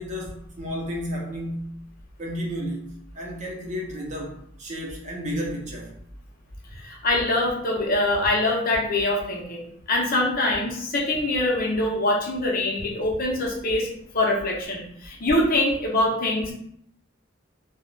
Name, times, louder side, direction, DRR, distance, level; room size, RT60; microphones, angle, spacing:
voice 1, 0.0-1.7 2.2-5.9, equal, 40° right, -1 dB, 0.6 m, -32 dB
voice 2, 6.8-13.9 14.1-16.5, left 1 dB, 50° left, -1 dB, 0.6 m, -24 dB
2.3 x 2.0 x 3.1 m, 0.70 s
head